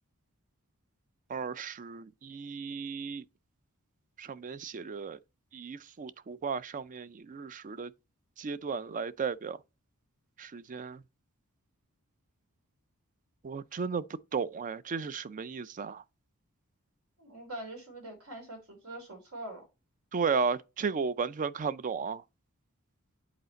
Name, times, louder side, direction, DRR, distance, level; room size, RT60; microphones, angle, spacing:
voice 1, 1.3-3.2 4.2-5.2 5.5-7.9 8.4-9.6 10.4-11.0 13.4-14.0 14.3-16.0 20.1-22.2, right 5 dB, 35° right, 0.4 m, -34 dB
voice 2, 17.2-19.6, right 1 dB, 70° right, 3.2 m, -43 dB
8.0 x 4.2 x 4.0 m
head